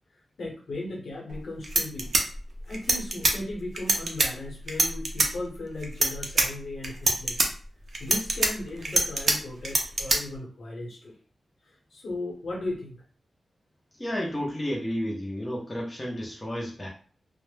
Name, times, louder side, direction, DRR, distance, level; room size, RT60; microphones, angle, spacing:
voice 1, 0.4-2.1 2.6-7.4 8.0-11.2 11.6-13.0, left 2 dB, 60° left, -2 dB, 0.9 m, -36 dB
sound 1, 1.3-1.4 1.6-3.3 3.8-4.3 4.7-5.3 5.8-6.5 6.8-7.5 7.9-9.3 9.6-10.2, right 2 dB, 50° right, 0.4 m, -23 dB
voice 2, 14.0-16.9, equal, 15° left, -3 dB, 0.5 m, -31 dB
2.1 x 2.0 x 3.1 m, 0.42 s
wide cardioid pair, 165°, 0 cm